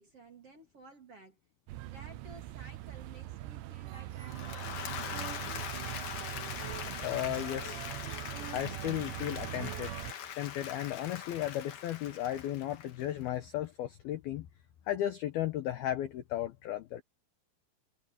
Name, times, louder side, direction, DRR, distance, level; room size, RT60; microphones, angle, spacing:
voice 1, 0.0-1.4 1.8-5.2 6.2-6.6, right 2 dB, 35° right, 2.8 m, -55 dB
sound 1, 1.7-10.1, right 16 dB, 75° right, 2.9 m, -41 dB
Applause / Crowd, 4.1-13.3, left 9 dB, 60° left, 2.3 m, -42 dB
voice 2, 7.0-7.9 8.5-10.0 10.4-14.5 14.9-17.0, left 12 dB, 80° left, 2.2 m, -35 dB
omnidirectional pair, 5.9 m